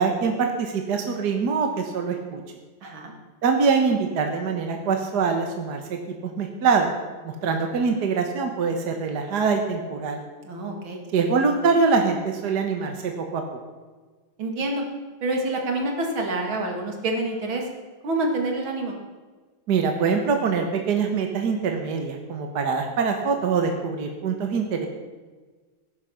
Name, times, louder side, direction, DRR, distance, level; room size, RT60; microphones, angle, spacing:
voice 1, 0.0-2.4 3.4-6.9 7.2-10.2 11.1-13.4 19.7-24.9, right 5 dB, 55° right, 4 dB, 1.8 m, -24 dB
voice 2, 2.8-3.1 10.4-11.0 14.4-14.8 15.2-17.7 18.0-18.9, right 2 dB, 80° right, 2 dB, 3.1 m, -27 dB
17.5 x 10.5 x 5.9 m, 1.4 s
omnidirectional pair, 2.2 m